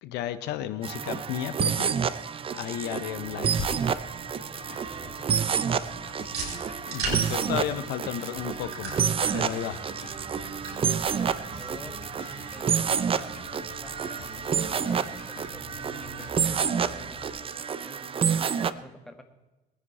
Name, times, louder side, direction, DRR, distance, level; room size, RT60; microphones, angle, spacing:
voice 1, 0.0-1.9 2.5-3.6 6.9-8.9 9.3-9.8, left 11 dB, 90° left, 12 dB, 0.9 m, -33 dB
sound 1, 0.8-18.7, right 7 dB, 35° right, 0.6 m, -29 dB
sound 2, 3.0-17.3, right 2 dB, 70° right, 5.1 m, -42 dB
voice 2, 4.3-5.5 10.7-12.0 12.5-13.4 13.8-17.3 17.8-19.2, equal, ahead, 6 dB, 1.7 m, -49 dB
sound 3, 4.6-16.5, left 7 dB, 60° left, 1.7 m, -49 dB
20.5 x 9.9 x 4.3 m, 1.1 s
cardioid pair, 110°, 17 cm